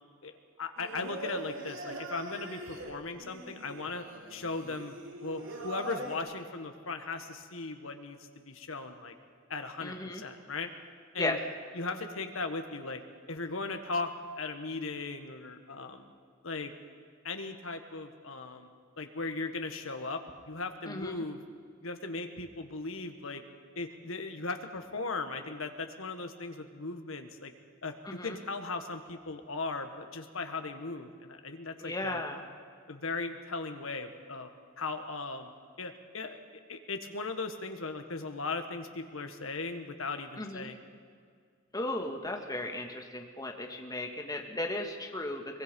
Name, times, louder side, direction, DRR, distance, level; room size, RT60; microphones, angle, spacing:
voice 1, 0.6-4.0 4.3-4.9 5.2-8.2 8.4-9.1 9.5-10.7 11.1-11.4 11.7-13.0 13.3-16.1 16.4-16.7 17.2-18.7 19.0-21.4 21.8-23.4 23.7-27.5 27.8-32.2 32.9-34.5 34.8-35.5 35.8-36.4 36.7-40.8, left 3 dB, 75° left, 6 dB, 1.7 m, -37 dB
Singing, 0.8-6.2, right 1 dB, 65° right, 2.9 m, -42 dB
voice 2, 9.8-10.2 11.2-11.4 11.9-12.0 20.9-21.1 28.0-28.4 31.8-32.4 40.4-40.7 41.7-45.6, left 2 dB, 20° left, 3 dB, 1.8 m, -35 dB
23.0 x 21.5 x 5.4 m, 2.1 s
head